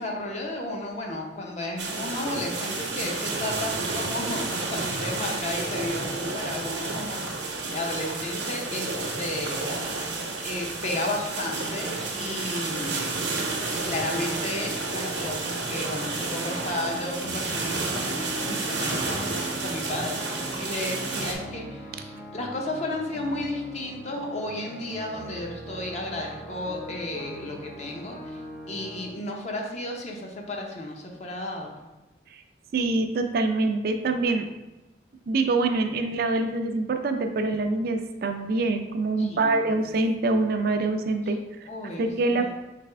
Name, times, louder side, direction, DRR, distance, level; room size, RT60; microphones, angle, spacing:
voice 1, 0.0-10.2 10.4-13.3 13.7-28.4 28.7-31.8 39.2-39.8 41.7-42.5, left 1 dB, 40° left, 1 dB, 0.7 m, -33 dB
sound 1, 1.8-21.3, right 3 dB, 85° right, 0.8 m, -31 dB
sound 2, 13.2-29.1, equal, 80° left, 1.4 m, -41 dB
voice 2, 32.7-34.5 35.3-41.7 42.0-42.5, right 3 dB, 55° right, 6 dB, 0.4 m, -25 dB
4.0 x 3.4 x 3.3 m, 1.1 s
head